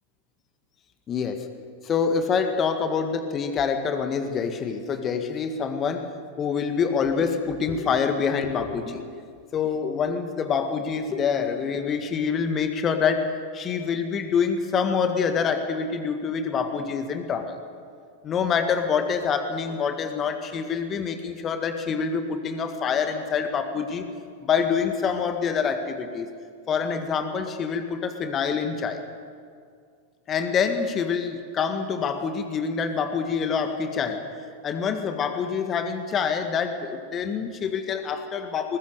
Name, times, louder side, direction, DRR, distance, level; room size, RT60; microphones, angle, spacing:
voice 1, 1.1-1.5 1.8-6.1 6.4-9.1 9.5-17.6 18.2-24.0 24.4-26.3 26.7-29.0 30.3-34.3 34.6-38.8, left 6 dB, 25° left, 7 dB, 1.8 m, -26 dB
21.0 x 21.0 x 6.7 m, 2.2 s
figure-of-eight pair, 90°, 0 cm